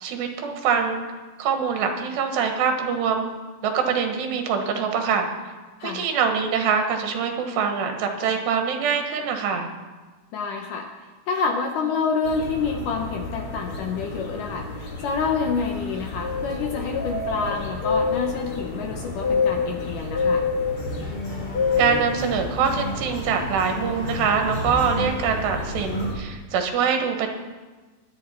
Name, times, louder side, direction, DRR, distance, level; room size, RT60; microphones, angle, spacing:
voice 1, 0.0-1.0 1.4-3.3 3.6-5.3 5.8-9.7 21.8-27.3, right 6 dB, 85° right, 4 dB, 3.6 m, -24 dB
voice 2, 10.3-20.4, left 5 dB, 75° left, 3 dB, 2.0 m, -28 dB
sound 1, 12.2-26.1, left 4 dB, 40° left, 2.1 m, -29 dB
sound 2, 20.7-26.0, left 1 dB, 20° left, 6.3 m, -33 dB
22.5 x 8.8 x 4.4 m, 1.3 s
omnidirectional pair, 4.8 m